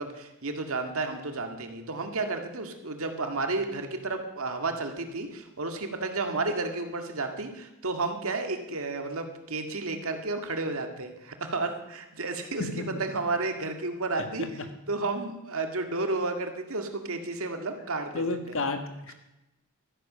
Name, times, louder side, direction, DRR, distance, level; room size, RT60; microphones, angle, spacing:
voice 1, 0.0-14.5 14.9-18.2, right 3 dB, 70° right, 5 dB, 1.9 m, -32 dB
voice 2, 14.2-14.7 18.1-19.1, left 3 dB, 65° left, 7 dB, 1.7 m, -32 dB
13.5 x 10.5 x 6.7 m, 0.93 s
head